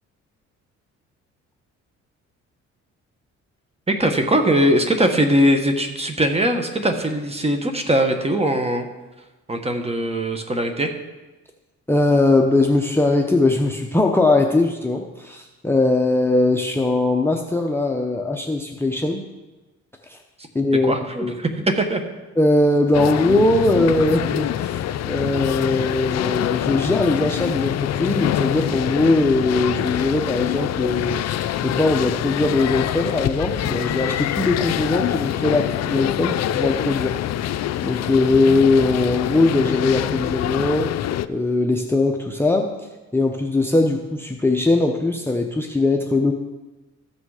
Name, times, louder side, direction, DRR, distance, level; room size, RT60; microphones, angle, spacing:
voice 1, 3.9-8.9 9.5-10.9 20.8-22.0, right 1 dB, 20° right, 5 dB, 1.3 m, -20 dB
voice 2, 11.9-19.2 20.1-20.2 20.5-20.9 21.2-21.4 22.4-37.2 37.5-40.9 41.3-42.7 43.1-46.3, left 2 dB, 10° left, 1 dB, 0.8 m, -20 dB
sound 1, 22.9-41.3, left 12 dB, 60° left, 0.5 m, -25 dB
14.0 x 6.1 x 4.9 m, 1.1 s
cardioid pair, 90°, 30 cm